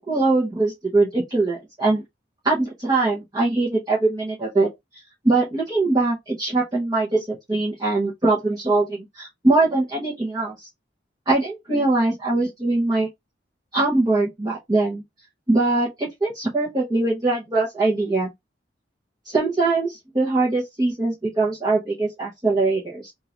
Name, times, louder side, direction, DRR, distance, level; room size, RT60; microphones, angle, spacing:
voice 1, 0.0-2.0 2.4-4.7 5.2-10.7 11.3-13.1 13.7-15.0 15.5-18.3 19.2-23.1, right 2 dB, 20° right, 1.0 m, -22 dB
3.8 x 2.5 x 2.9 m
head